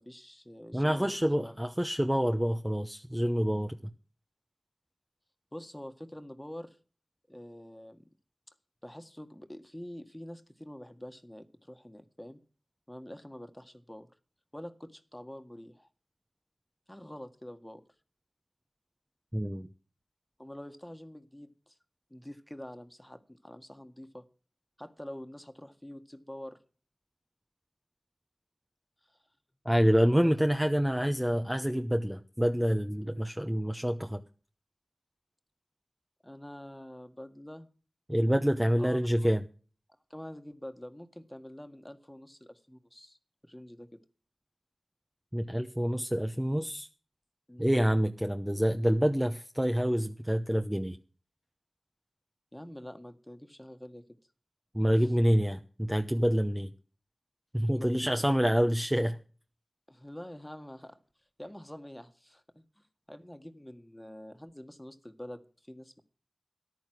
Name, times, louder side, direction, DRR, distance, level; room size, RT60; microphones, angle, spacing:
voice 1, 0.0-1.6 5.5-6.8 7.3-8.0 8.8-12.4 12.9-14.1 14.5-15.9 16.9-17.8 20.4-21.8 22.1-24.3 24.8-26.6 29.0-29.2 30.2-30.4 31.0-31.1 36.2-37.7 38.8-39.3 40.1-43.2 43.5-44.0 47.5-47.8 52.5-54.1 55.0-55.1 57.7-58.3 59.9-61.0 61.4-66.0, left 1 dB, 10° left, 8 dB, 1.7 m, -46 dB
voice 2, 0.7-3.8 19.3-19.7 29.6-34.2 38.1-39.4 45.3-46.9 47.6-51.0 54.7-56.7 57.5-59.2, equal, 10° right, 6 dB, 0.9 m, -27 dB
14.0 x 10.0 x 6.2 m, 0.39 s
cardioid pair, 40°, 0 cm